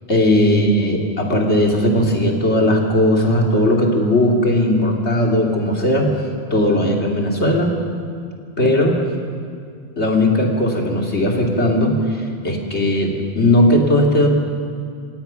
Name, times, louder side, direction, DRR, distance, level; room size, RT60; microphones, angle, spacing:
voice 1, 0.1-6.1 6.5-7.8 8.6-9.0 10.0-14.3, left 1 dB, 85° left, 0 dB, 3.0 m, -17 dB
27.5 x 17.0 x 5.8 m, 2.2 s
omnidirectional pair, 1.1 m